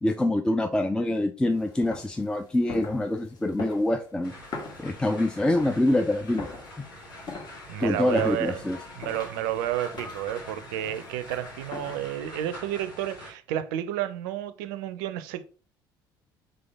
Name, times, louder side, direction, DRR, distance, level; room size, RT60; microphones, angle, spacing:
voice 1, 0.0-4.3 4.8-6.5 7.8-8.8, left 1 dB, 10° left, 0.4 m, -25 dB
sound 1, 1.5-12.2, left 3 dB, 40° left, 1.4 m, -43 dB
sound 2, 4.2-13.3, left 1 dB, 80° left, 1.3 m, -45 dB
voice 2, 7.7-8.6 9.0-15.4, right 12 dB, 65° right, 0.5 m, -31 dB
3.7 x 3.3 x 3.4 m
figure-of-eight pair, 55°, 11 cm